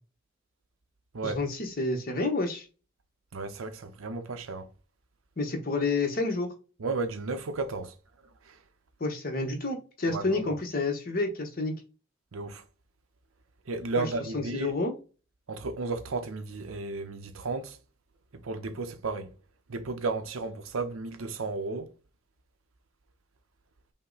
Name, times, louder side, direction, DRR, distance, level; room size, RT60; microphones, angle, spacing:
voice 1, 1.2-2.7 5.4-6.5 9.0-11.7 14.0-14.1 14.3-14.9, left 3 dB, 45° left, 1.0 m, -29 dB
voice 2, 3.3-4.7 6.8-7.9 8.5-8.6 10.1-10.6 12.3-12.6 13.7-14.7 15.5-17.8 18.3-19.3 19.7-21.9, right 3 dB, 85° right, 0.7 m, -33 dB
5.5 x 2.1 x 3.9 m
head